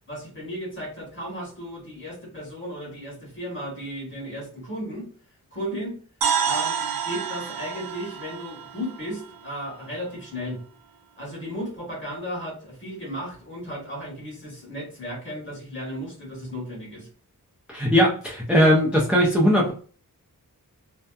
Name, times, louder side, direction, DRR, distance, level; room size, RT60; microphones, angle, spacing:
voice 1, 0.1-5.1 5.5-5.9 6.4-10.6 11.2-17.1, equal, 35° left, -3 dB, 1.4 m, -35 dB
sound 1, 6.2-10.2, right 7 dB, 85° right, 0.5 m, -29 dB
voice 2, 17.7-19.7, equal, 5° right, -2 dB, 0.5 m, -19 dB
2.7 x 2.1 x 2.3 m, 0.42 s
wide cardioid pair, 90°, 35 cm